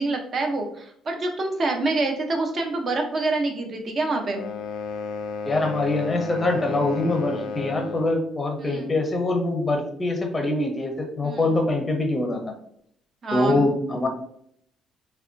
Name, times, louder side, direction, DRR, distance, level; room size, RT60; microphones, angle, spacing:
voice 1, 0.0-4.4 8.6-8.9 11.2-11.5 13.2-13.7, right 2 dB, 35° right, 3 dB, 0.6 m, -26 dB
sound 1, 4.3-8.2, left 4 dB, 75° left, 0.3 m, -32 dB
voice 2, 5.4-12.4 13.3-14.1, left 2 dB, 20° left, 3 dB, 0.6 m, -24 dB
3.4 x 2.2 x 2.5 m, 0.68 s
cardioid pair, 140°, 0 cm